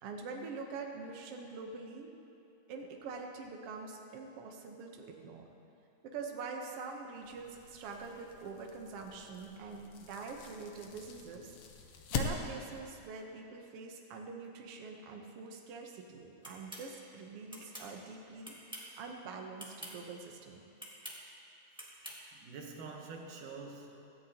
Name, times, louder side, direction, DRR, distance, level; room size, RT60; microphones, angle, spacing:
voice 1, 0.0-2.1 2.7-5.5 6.0-11.6 12.1-18.5 19.0-20.6, right 4 dB, 60° right, 2 dB, 1.7 m, -45 dB
sound 1, 7.2-12.8, left 4 dB, 65° left, 1.6 m, -43 dB
sound 2, 16.4-16.9 17.5-17.9 18.4-18.9 19.6-19.9 20.8-21.2 21.8-22.2, equal, 10° right, 0.3 m, -46 dB
voice 2, 21.7-24.1, right 4 dB, 90° right, 1 dB, 2.8 m, -48 dB
17.0 x 13.5 x 2.9 m, 2.9 s
omnidirectional pair, 3.5 m